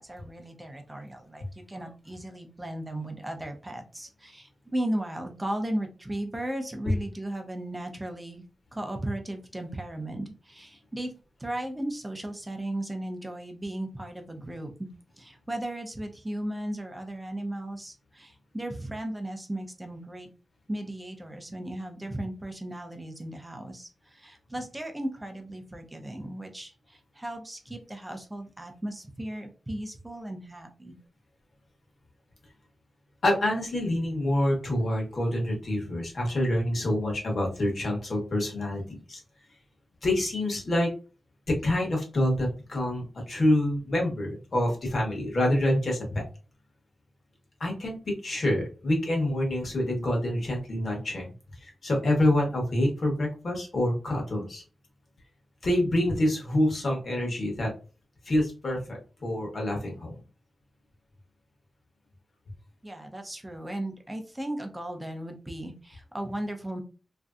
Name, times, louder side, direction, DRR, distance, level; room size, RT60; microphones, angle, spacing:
voice 1, 0.0-8.4 8.7-11.1 11.4-14.7 15.2-20.3 20.7-31.0 62.8-66.8, right 1 dB, 10° right, 4 dB, 0.5 m, -36 dB
voice 2, 33.2-39.2 40.0-40.9 41.5-46.2 47.6-51.3 51.6-54.6 55.6-57.7 58.2-60.2, left 1 dB, 45° left, 0 dB, 1.0 m, -27 dB
3.1 x 2.6 x 2.4 m, 0.35 s
wide cardioid pair, 160°, 0 cm